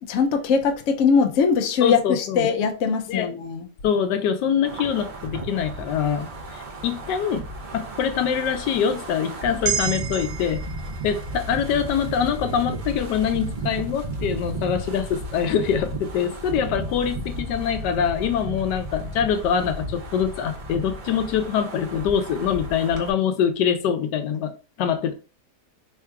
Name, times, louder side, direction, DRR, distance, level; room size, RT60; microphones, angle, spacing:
voice 1, 0.0-3.7, left 5 dB, 65° left, 0.8 m, -21 dB
voice 2, 1.8-2.5 3.1-3.3 3.8-7.4 7.7-10.6 11.0-24.5 24.8-25.1, left 8 dB, 85° left, 1.3 m, -24 dB
Wind, 4.6-23.1, right 2 dB, 40° right, 0.7 m, -34 dB
sound 1, 9.6-14.1 14.5-14.7, right 7 dB, 85° right, 1.4 m, -34 dB
3.5 x 2.4 x 4.5 m
omnidirectional pair, 1.8 m